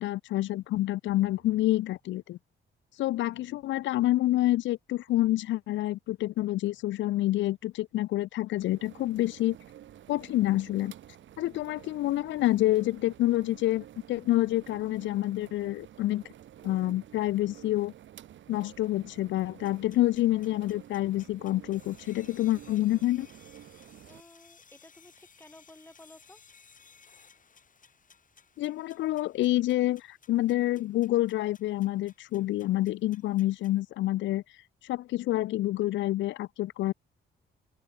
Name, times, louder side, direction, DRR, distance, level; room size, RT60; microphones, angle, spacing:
voice 1, 0.0-2.4 3.0-9.6 10.1-10.9 11.4-16.2 16.6-17.9 18.5-23.3 28.6-34.4 34.9-36.9, left 15 dB, 70° left, 0.4 m, -28 dB
sound 1, 1.0-2.3 3.3-4.1 5.1-5.7 6.7-7.3, right 8 dB, 55° right, 7.3 m, -66 dB
sound 2, 8.6-24.2, right 11 dB, 70° right, 3.7 m, -51 dB
sound 3, 19.6-33.8, left 6 dB, 40° left, 7.2 m, -60 dB
voice 2, 24.1-26.4, left 1 dB, 10° left, 5.0 m, -54 dB
open air
cardioid pair, 90°, 20 cm